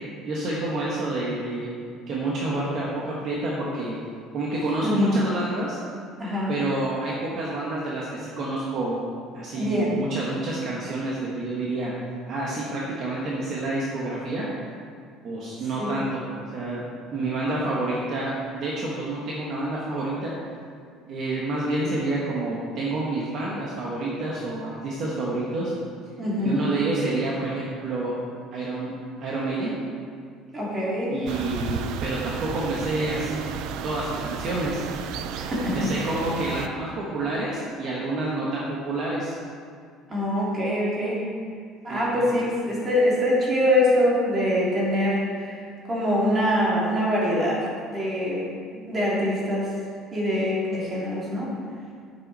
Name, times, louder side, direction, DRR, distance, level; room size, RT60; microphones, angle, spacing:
voice 1, 0.2-1.7 2.1-4.0 4.3-5.8 6.5-9.0 9.3-11.9 12.3-14.4 15.2-16.2 16.5-16.8 17.1-20.3 21.1-25.7 26.4-28.1 28.5-29.7 31.1-34.8 35.7-39.3 41.9-42.2, right 2 dB, 45° right, -5 dB, 1.5 m, -28 dB
voice 2, 6.2-6.5 9.5-10.0 15.8-16.0 26.2-26.7 30.5-31.1 35.4-36.0 40.1-41.2 41.8-45.6 45.8-47.6 47.9-48.4 48.7-49.7 50.1-51.5, left 1 dB, 20° right, -6 dB, 3.0 m, -24 dB
sound 1, 31.3-36.7, right 7 dB, 65° right, 0.6 m, -33 dB
9.8 x 9.0 x 4.2 m, 2.2 s
cardioid pair, 155°, 0 cm